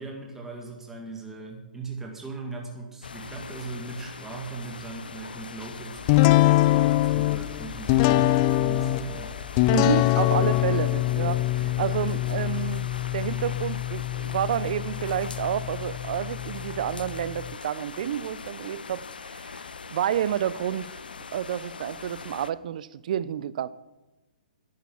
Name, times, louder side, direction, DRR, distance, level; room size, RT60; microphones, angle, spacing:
voice 1, 0.0-9.4 11.6-11.8, right 4 dB, 5° right, 2.0 m, -39 dB
sound 1, 3.0-22.5, left 5 dB, 80° left, 0.7 m, -41 dB
sound 2, 6.1-17.5, left 16 dB, 35° left, 0.4 m, -24 dB
voice 2, 9.7-12.9 13.1-21.0 21.3-23.7, right 10 dB, 55° right, 0.6 m, -30 dB
10.5 x 9.4 x 7.2 m
hypercardioid pair, 130°, 5 cm